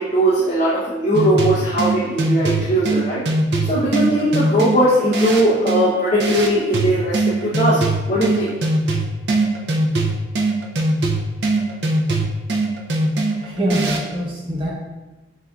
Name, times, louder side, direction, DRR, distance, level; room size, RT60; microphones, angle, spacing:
voice 1, 0.0-3.2 3.6-7.8 8.1-8.5, right 1 dB, 40° left, -9 dB, 0.8 m, -19 dB
sound 1, 1.1-14.1, right 2 dB, 65° right, 0.5 m, -21 dB
voice 2, 13.4-14.7, equal, 25° right, -5 dB, 0.9 m, -23 dB
7.2 x 2.6 x 2.4 m, 1.1 s
head